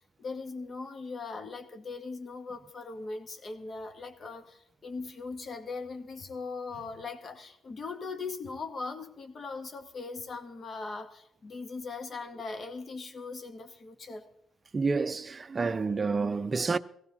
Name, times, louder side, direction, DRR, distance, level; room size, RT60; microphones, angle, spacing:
voice 1, 0.2-14.3, left 4 dB, 45° left, 1.8 m, -40 dB
voice 2, 14.7-16.8, right 4 dB, 30° right, 0.5 m, -29 dB
17.0 x 15.5 x 4.0 m
cardioid pair, 90°, 0 cm